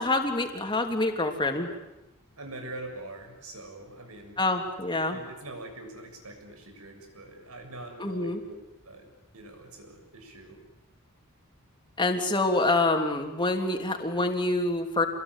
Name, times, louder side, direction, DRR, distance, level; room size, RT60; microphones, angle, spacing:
voice 1, 0.0-1.7 4.4-5.2 8.0-8.4 12.0-15.1, left 2 dB, 20° left, 3 dB, 3.3 m, -26 dB
voice 2, 2.4-4.4 5.1-8.5 8.8-9.1 9.3-10.7, right 2 dB, 85° right, 4 dB, 7.3 m, -43 dB
27.5 x 21.5 x 10.0 m, 0.93 s
head